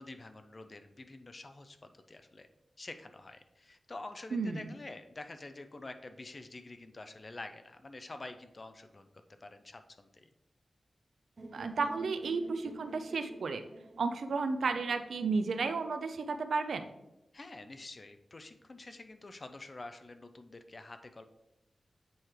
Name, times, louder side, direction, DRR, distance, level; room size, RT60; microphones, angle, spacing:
voice 1, 0.0-2.5 2.8-9.1 9.4-10.3 17.3-21.2, left 2 dB, 35° left, 8 dB, 0.4 m, -48 dB
voice 2, 4.3-4.7 11.5-13.6 14.0-16.9, right 4 dB, 85° right, 9 dB, 0.4 m, -33 dB
sound 1, 11.4-15.3, right 1 dB, 40° right, 0.7 m, -50 dB
7.7 x 4.4 x 3.2 m, 0.93 s
wide cardioid pair, 135°, 0 cm